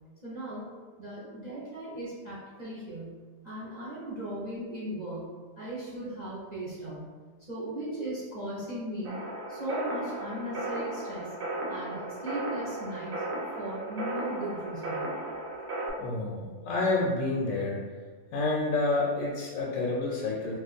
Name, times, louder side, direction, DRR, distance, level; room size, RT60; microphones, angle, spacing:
voice 1, 0.2-0.6 1.0-3.2 3.4-7.0 7.5-9.2 9.5-11.3 11.7-13.1 13.6-15.0, right 1 dB, 40° right, -8 dB, 0.6 m, -37 dB
sound 1, 9.0-15.9, right 2 dB, 70° right, 0.9 m, -35 dB
voice 2, 16.0-17.8 18.3-20.6, left 3 dB, 75° left, -3 dB, 0.9 m, -29 dB
2.4 x 2.4 x 3.9 m, 1.4 s
omnidirectional pair, 1.5 m